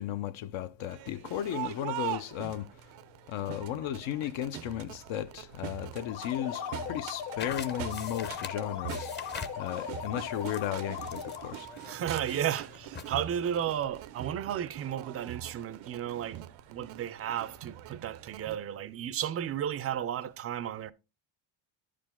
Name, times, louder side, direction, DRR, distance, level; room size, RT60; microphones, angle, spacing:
voice 1, 0.0-2.7 3.3-9.1 9.6-11.7, left 11 dB, 75° left, 0.7 m, -35 dB
Crowd, 0.8-18.6, right 14 dB, 85° right, 0.8 m, -43 dB
sound 1, 6.0-11.7, left 8 dB, 55° left, 1.2 m, -39 dB
sound 2, 7.4-13.2, left 5 dB, 25° left, 0.6 m, -45 dB
voice 2, 11.8-20.9, right 10 dB, 35° right, 0.4 m, -33 dB
11.0 x 5.1 x 3.6 m
cardioid pair, 150°, 47 cm